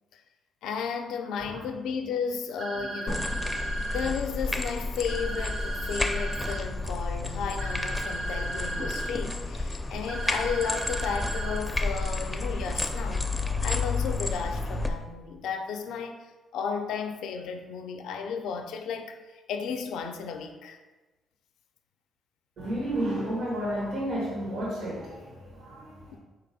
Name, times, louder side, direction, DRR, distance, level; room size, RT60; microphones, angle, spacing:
voice 1, 0.6-3.4 3.9-13.3 13.6-20.8, left 6 dB, 85° left, 0.4 m, -34 dB
sound 1, 2.6-4.1 5.1-6.6 7.6-9.1 10.1-11.6, right 2 dB, 60° right, 1.0 m, -35 dB
sound 2, 3.1-14.9, left 2 dB, 10° left, 0.4 m, -31 dB
voice 2, 22.6-26.2, right 1 dB, 80° right, 1.2 m, -32 dB
4.2 x 2.9 x 4.0 m
cardioid pair, 90°, 0 cm